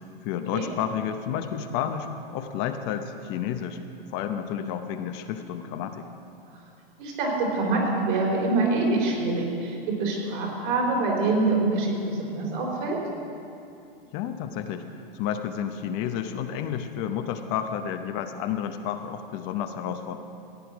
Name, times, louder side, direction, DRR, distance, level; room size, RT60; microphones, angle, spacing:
voice 1, 0.2-3.8 4.1-6.1 14.1-20.2, left 9 dB, 40° left, 7 dB, 0.8 m, -31 dB
voice 2, 7.0-13.0, right 3 dB, 60° right, -1 dB, 4.1 m, -25 dB
15.5 x 9.3 x 6.0 m, 2.6 s
hypercardioid pair, 115°, 29 cm